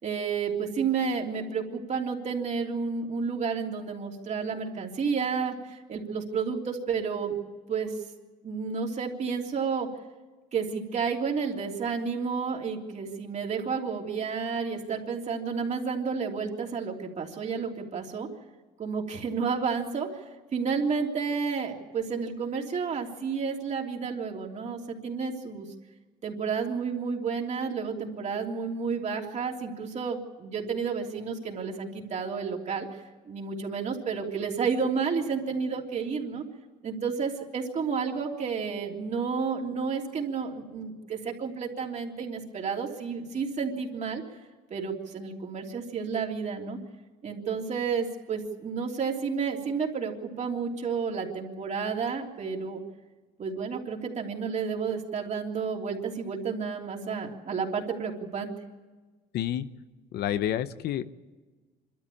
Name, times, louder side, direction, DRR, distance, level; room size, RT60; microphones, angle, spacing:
voice 1, 0.0-7.4 7.7-8.0 8.4-9.9 10.5-18.3 18.8-20.2 20.5-25.7 26.2-32.9 33.2-36.4 36.8-44.2 44.7-46.8 47.2-52.8 53.4-58.5, right 5 dB, 45° right, 1 dB, 3.2 m, -31 dB
voice 2, 59.3-59.7 60.1-61.0, left 11 dB, 75° left, 13 dB, 0.9 m, -29 dB
26.0 x 13.0 x 8.6 m, 1.3 s
cardioid pair, 110°, 17 cm